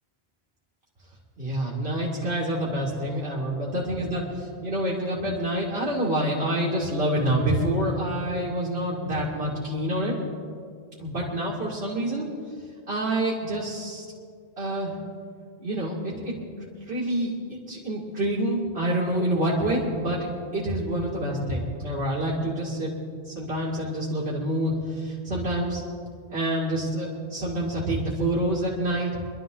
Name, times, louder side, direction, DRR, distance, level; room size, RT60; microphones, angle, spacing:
voice 1, 1.4-10.1 11.0-12.3 12.9-14.0 14.6-14.9 15.6-20.2 20.5-22.9 23.3-25.8 26.3-29.1, right 1 dB, 70° right, -7 dB, 2.5 m, -27 dB
24.0 x 12.0 x 3.8 m, 2.2 s
omnidirectional pair, 1.1 m